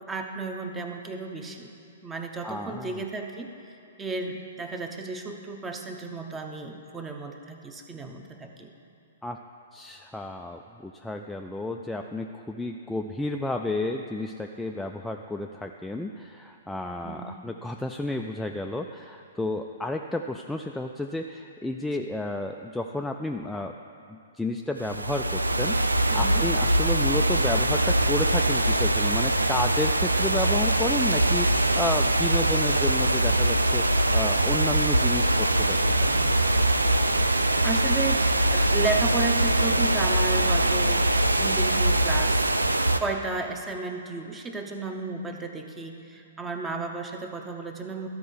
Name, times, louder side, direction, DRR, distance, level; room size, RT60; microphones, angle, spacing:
voice 1, 0.1-1.7 2.0-3.5 4.0-8.7 17.0-17.4 26.1-26.4 37.6-38.2 38.5-41.0 41.4-48.1, right 3 dB, 15° right, 4 dB, 0.8 m, -33 dB
voice 2, 2.4-3.0 9.2-9.4 9.7-23.7 24.1-33.9 34.1-36.3, left 2 dB, 5° left, 3 dB, 0.3 m, -32 dB
sound 1, 24.8-43.0, right 1 dB, 90° right, 0.4 m, -23 dB
12.5 x 4.6 x 6.3 m, 2.6 s
figure-of-eight pair, 120°, 0 cm